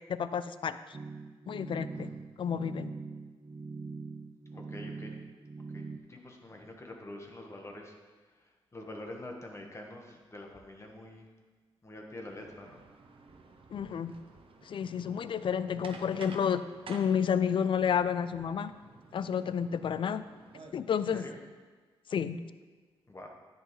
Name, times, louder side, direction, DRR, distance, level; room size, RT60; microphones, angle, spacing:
voice 1, 0.1-1.0 1.5-2.1 2.4-3.0 13.7-14.2 14.6-16.6 16.9-18.7 19.1-20.2 20.7-21.2 22.1-22.4, left 7 dB, 55° left, 13 dB, 0.4 m, -30 dB
sound 1, 0.9-6.0, right 4 dB, 30° right, 0.5 m, -43 dB
voice 2, 1.9-2.2 4.5-5.2 5.7-7.9 8.3-11.3 11.8-12.8 21.1-21.4 23.1-23.3, left 1 dB, 25° left, 1 dB, 1.3 m, -46 dB
sound 2, 12.3-20.7, right 4 dB, 60° right, 0.9 m, -53 dB
10.0 x 8.0 x 3.2 m, 1.4 s
cardioid pair, 85°, 10 cm